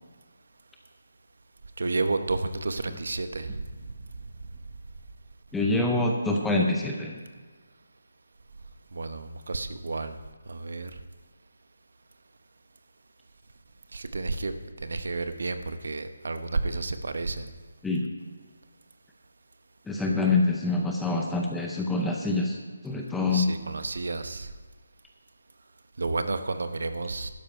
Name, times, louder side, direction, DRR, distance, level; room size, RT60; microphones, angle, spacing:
voice 1, 1.8-3.6 8.9-10.1 10.5-10.9 13.9-14.5 14.8-17.5 23.3-24.5 26.0-27.3, right 3 dB, 55° right, 10 dB, 0.9 m, -31 dB
voice 2, 5.5-7.2 17.8-18.1 19.9-22.6 22.8-23.5, left 2 dB, 5° left, 0 dB, 0.5 m, -25 dB
12.5 x 10.0 x 4.5 m, 1.4 s
hypercardioid pair, 180°, 0 cm